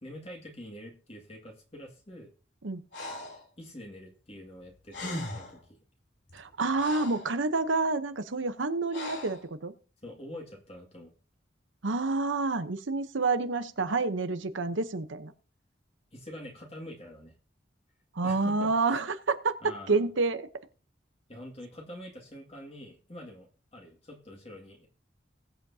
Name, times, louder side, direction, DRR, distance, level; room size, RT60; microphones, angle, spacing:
voice 1, 0.0-2.3 3.6-5.8 10.0-11.1 16.1-17.3 18.2-19.0 19.6-20.1 21.3-24.9, left 1 dB, 30° left, 0 dB, 2.1 m, -45 dB
Breathing, 2.9-3.4 4.6-4.7 4.9-5.6 6.3-7.3 8.9-9.4, left 1 dB, 70° left, 3.1 m, -38 dB
voice 2, 6.3-9.7 11.8-15.3 18.2-20.5, right 3 dB, 85° right, 9 dB, 0.9 m, -28 dB
20.5 x 8.0 x 2.8 m, 0.36 s
head